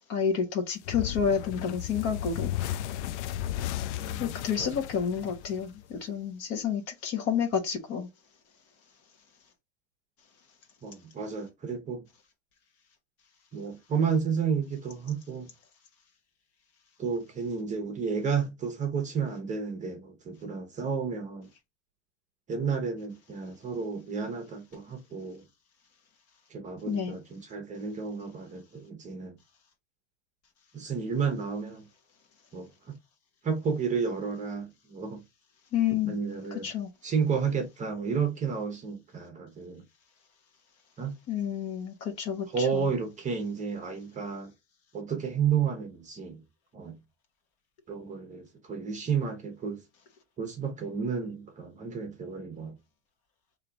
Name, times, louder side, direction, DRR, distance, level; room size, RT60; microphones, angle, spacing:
voice 1, 0.1-2.6 4.2-8.1 26.9-27.2 35.7-36.2 36.5-36.9 41.3-42.9, left 7 dB, 40° left, 1.2 m, -30 dB
sound 1, 0.8-6.0, left 12 dB, 70° left, 0.5 m, -34 dB
voice 2, 10.8-12.0 13.5-15.5 17.0-21.5 22.5-25.4 26.5-29.4 30.7-31.9 32.5-32.7 33.4-35.2 36.1-36.7 37.0-39.8 41.0-41.1 42.5-44.5 44.9-46.4 46.7-46.9 47.9-49.8 50.4-52.8, right 6 dB, 20° right, 0.9 m, -31 dB
3.3 x 2.8 x 3.9 m
supercardioid pair, 130°, 35 cm